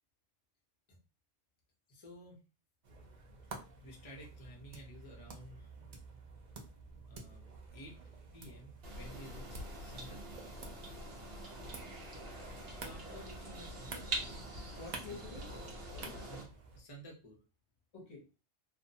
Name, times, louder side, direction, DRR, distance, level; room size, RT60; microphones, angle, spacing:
voice 1, 1.9-2.4 3.5-5.7 7.1-8.0 8.3-10.4 12.8-14.5 15.1-15.2 16.3-17.4, equal, 30° left, -3 dB, 0.7 m, -53 dB
sound 1, 2.8-16.8, right 3 dB, 75° right, 0.4 m, -51 dB
sound 2, 8.8-16.4, right 2 dB, 55° right, 0.9 m, -44 dB
voice 2, 14.8-16.2 17.9-18.4, left 3 dB, 60° left, 0 dB, 1.0 m, -50 dB
2.6 x 2.1 x 2.7 m, 0.32 s
omnidirectional pair, 1.3 m